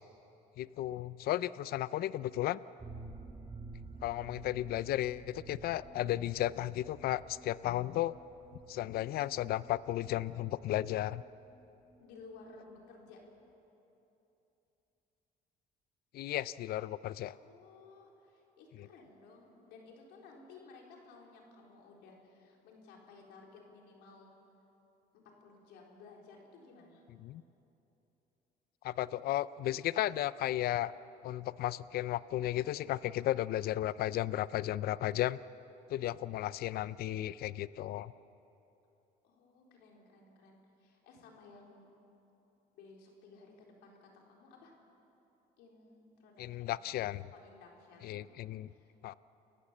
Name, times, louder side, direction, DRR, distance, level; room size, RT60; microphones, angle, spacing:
voice 1, 0.6-2.6 4.0-8.1 8.7-11.2 16.1-17.3 18.8-18.9 27.2-27.4 28.8-30.9 31.2-35.4 35.9-38.1 46.4-47.3 48.0-48.7 49.0-49.1, left 14 dB, 65° left, 18 dB, 0.5 m, -34 dB
sound 1, 2.8-12.4 12.7-12.8 13.1-13.2, right 3 dB, 25° right, 1.4 m, -52 dB
voice 2, 12.0-13.2 17.3-24.3 25.1-27.0 39.2-41.9 42.7-44.7 45.6-46.7 47.3-48.2 48.7-48.9, left 4 dB, 90° left, 0 dB, 4.1 m, -56 dB
29.0 x 15.5 x 7.4 m, 3.0 s
cardioid pair, 110°, 17 cm